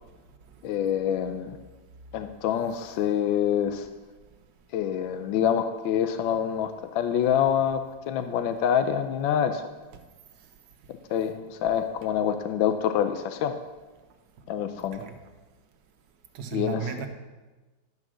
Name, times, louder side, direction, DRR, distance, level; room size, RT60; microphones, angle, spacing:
voice 1, 0.6-1.6 2.1-3.9 4.7-9.6 11.1-13.5 14.5-15.0 16.5-16.9, left 9 dB, 80° left, 8 dB, 1.4 m, -26 dB
voice 2, 16.3-17.1, right 8 dB, 70° right, 6 dB, 1.5 m, -34 dB
12.0 x 5.0 x 6.2 m, 1.2 s
omnidirectional pair, 2.1 m